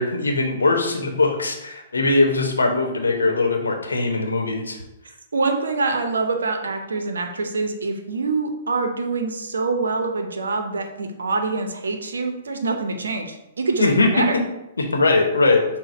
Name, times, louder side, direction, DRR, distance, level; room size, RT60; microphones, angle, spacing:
voice 1, 0.0-4.8 13.8-14.2 14.8-15.7, left 2 dB, 75° left, 3 dB, 0.8 m, -20 dB
voice 2, 5.3-13.9 14.1-14.3, right 3 dB, 70° right, 5 dB, 0.6 m, -25 dB
6.2 x 2.1 x 4.0 m, 0.92 s
figure-of-eight pair, 115°, 0 cm